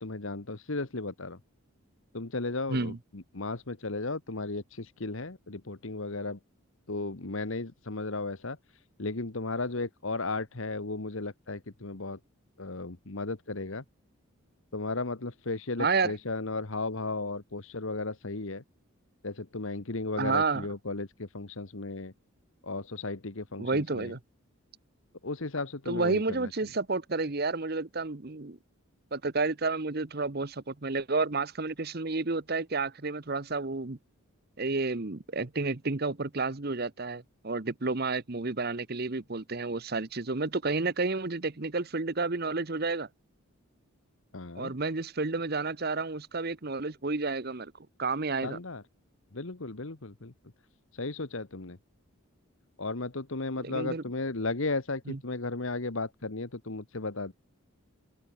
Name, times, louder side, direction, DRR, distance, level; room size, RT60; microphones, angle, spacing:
voice 1, 0.0-1.4 2.1-6.4 6.9-8.6 9.0-12.2 12.6-13.8 14.7-18.6 19.2-22.1 22.6-24.1 25.2-26.5 44.3-44.7 48.4-48.8 49.3-50.3 50.9-51.8 52.8-57.3, left 3 dB, 65° left, 1.4 m, -35 dB
voice 2, 15.8-16.1 20.2-20.7 23.6-24.2 25.9-28.6 29.1-34.0 34.6-43.1 44.5-47.7 48.0-48.6 53.6-54.0 55.1-55.2, right 3 dB, 45° right, 1.0 m, -30 dB
open air
head